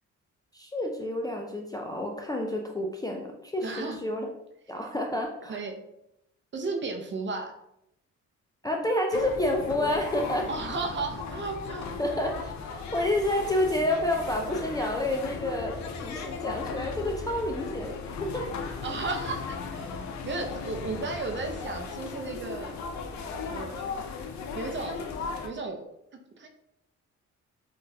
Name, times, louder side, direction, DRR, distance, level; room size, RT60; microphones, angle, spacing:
voice 1, 0.5-4.3 4.7-5.6 8.6-10.5 12.0-18.5, left 1 dB, 15° left, 1 dB, 0.3 m, -29 dB
voice 2, 3.6-4.0 5.5-5.8 6.5-7.5 10.5-11.9 18.8-19.9 20.3-22.8 23.5-24.0 24.5-25.0 25.4-25.8 26.4-26.5, right 3 dB, 40° right, 3 dB, 0.6 m, -34 dB
sound 1, 9.1-25.5, left 4 dB, 65° left, 0.5 m, -37 dB
3.7 x 2.4 x 2.6 m, 0.80 s
cardioid pair, 90°, 30 cm